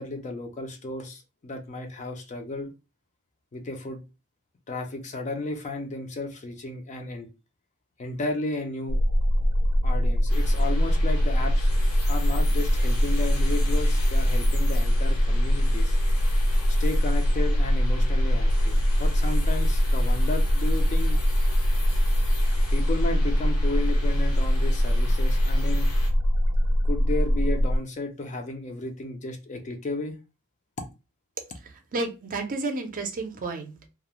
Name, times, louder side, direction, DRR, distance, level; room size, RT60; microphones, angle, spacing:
voice 1, 0.0-2.7 3.5-4.0 4.7-7.3 8.0-9.0 9.8-11.7 12.1-15.9 16.7-21.2 22.7-25.9 26.8-30.2, left 2 dB, 35° left, 0.4 m, -33 dB
sound 1, 8.9-27.8, equal, 90° right, 0.4 m, -22 dB
sound 2, 10.3-26.1, left 2 dB, 70° left, 1.0 m, -41 dB
voice 2, 31.6-33.9, right 3 dB, 40° right, 0.5 m, -32 dB
2.3 x 2.0 x 2.9 m
head